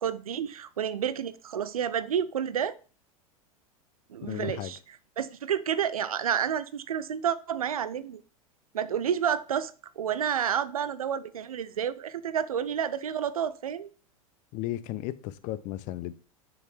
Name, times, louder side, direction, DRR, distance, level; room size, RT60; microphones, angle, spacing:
voice 1, 0.0-2.8 4.1-4.8 5.2-8.2 8.7-9.7 10.0-13.9, right 8 dB, 75° right, 0.7 m, -30 dB
voice 2, 4.2-4.7 14.5-16.1, left 14 dB, 45° left, 0.7 m, -34 dB
7.2 x 6.6 x 3.4 m
figure-of-eight pair, 85°, 19 cm